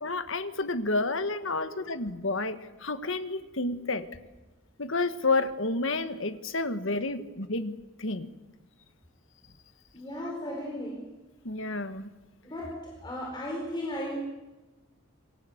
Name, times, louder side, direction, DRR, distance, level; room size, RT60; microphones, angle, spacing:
voice 1, 0.0-4.1 4.8-8.3 11.5-12.1, left 3 dB, 65° left, 11 dB, 1.6 m, -30 dB
voice 2, 1.6-1.9 3.7-3.9 9.9-11.1 12.4-14.2, left 1 dB, 20° left, -1 dB, 4.6 m, -36 dB
27.0 x 23.0 x 8.0 m, 1.1 s
head